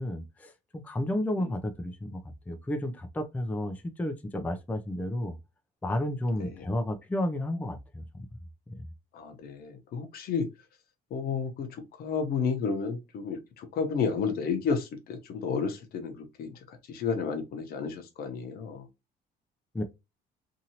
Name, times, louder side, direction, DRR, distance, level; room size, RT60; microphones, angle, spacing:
voice 1, 0.0-5.3 5.8-8.3 8.7-8.8 19.7-19.8, left 1 dB, 10° left, 0.4 m, -32 dB
voice 2, 9.1-10.5 11.1-18.9, left 5 dB, 65° left, 0.8 m, -32 dB
2.8 x 2.6 x 2.8 m
cardioid pair, 110°, 17 cm